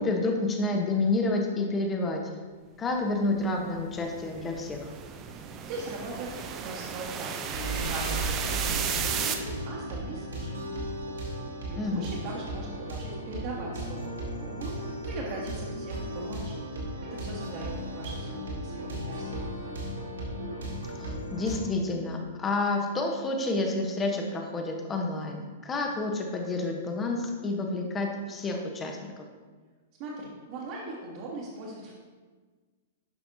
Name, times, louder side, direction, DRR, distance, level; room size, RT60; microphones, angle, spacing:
voice 1, 0.0-2.3 2.8-4.9 11.8-12.1 20.9-29.2, left 2 dB, 20° left, 3 dB, 1.0 m, -29 dB
sound 1, 3.3-9.3, right 7 dB, 30° right, 0.6 m, -34 dB
voice 2, 5.7-10.6 11.6-16.6 17.0-19.4 30.0-31.9, right 2 dB, 45° right, -7 dB, 1.5 m, -40 dB
sound 2, 7.5-21.6, right 1 dB, 70° right, 2.2 m, -35 dB
11.5 x 5.7 x 2.7 m, 1.4 s
figure-of-eight pair, 105°, 0 cm